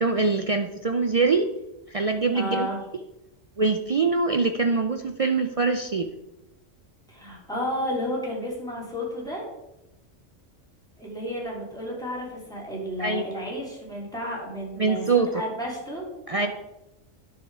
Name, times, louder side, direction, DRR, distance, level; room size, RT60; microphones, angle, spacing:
voice 1, 0.0-1.5 1.9-2.7 3.6-6.1 13.0-13.2 14.8-15.3 16.3-16.5, right 4 dB, 65° right, 7 dB, 0.3 m, -23 dB
voice 2, 2.3-2.8 7.1-9.5 11.0-16.0 16.3-16.5, equal, 5° left, -4 dB, 3.3 m, -32 dB
10.5 x 6.5 x 4.9 m, 0.93 s
omnidirectional pair, 1.3 m